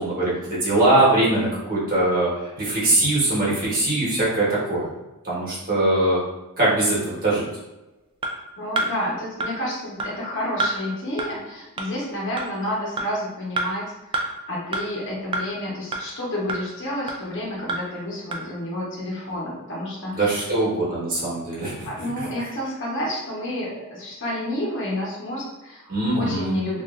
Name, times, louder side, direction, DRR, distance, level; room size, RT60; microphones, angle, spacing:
voice 1, 0.0-4.9 5.2-6.2 6.6-7.5 20.1-21.9 25.9-26.6, right 2 dB, 40° right, -7 dB, 1.1 m, -22 dB
sound 1, 8.2-8.3 8.8-8.9 9.4-9.5 10.0-10.1 10.6-10.7 11.2-11.3 11.8-11.9 12.4-12.5 13.0-13.1 13.6-13.7 14.1-14.2 14.7-14.8 15.3-15.4 15.9-16.0 16.5-16.6 17.1-17.2 17.7-17.8 18.3-18.4, right 2 dB, 25° right, 0.3 m, -25 dB
voice 2, 8.6-20.4 21.9-26.8, left 1 dB, 60° left, -5 dB, 0.9 m, -30 dB
3.0 x 2.5 x 2.4 m, 1.0 s
head